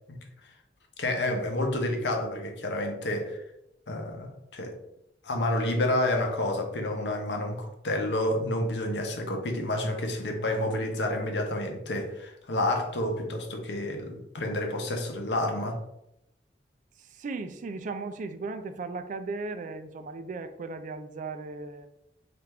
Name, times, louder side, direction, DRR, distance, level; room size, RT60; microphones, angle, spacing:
voice 1, 1.0-3.4 3.9-4.8 5.2-15.8, left 1 dB, 75° left, 3 dB, 0.7 m, -29 dB
voice 2, 17.0-21.9, right 3 dB, 45° right, 9 dB, 0.3 m, -36 dB
3.3 x 2.5 x 4.3 m, 0.82 s
head